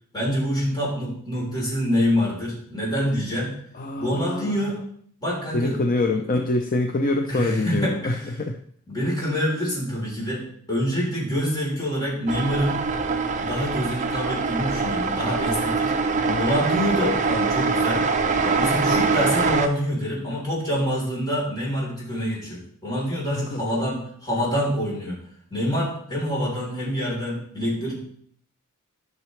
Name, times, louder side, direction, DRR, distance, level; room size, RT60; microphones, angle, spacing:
voice 1, 0.1-3.5 4.0-4.8 5.2-5.8 7.3-8.2 8.9-12.8 13.4-15.9 16.4-18.0 18.4-25.2 25.5-27.9, equal, 20° left, -6 dB, 3.6 m, -26 dB
voice 2, 3.7-4.7 5.5-8.6 16.1-16.4 23.4-23.6, left 2 dB, 40° left, 5 dB, 0.5 m, -25 dB
sound 1, 12.3-19.7, right 4 dB, 35° right, 0.6 m, -23 dB
12.0 x 6.0 x 3.2 m, 0.62 s
head